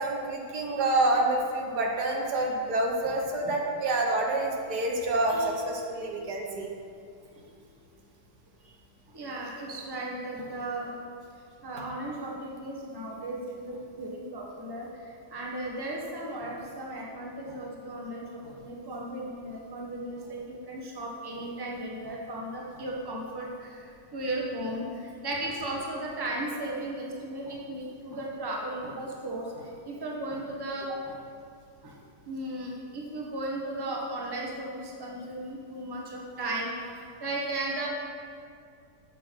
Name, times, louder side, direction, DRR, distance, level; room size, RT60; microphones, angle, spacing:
voice 1, 0.0-6.7, right 2 dB, 75° right, 0 dB, 1.7 m, -27 dB
voice 2, 9.1-10.9 11.6-31.2 31.8-32.0 32.3-37.9, right 1 dB, 15° right, -2 dB, 1.1 m, -36 dB
7.5 x 6.3 x 6.0 m, 2.4 s
omnidirectional pair, 1.7 m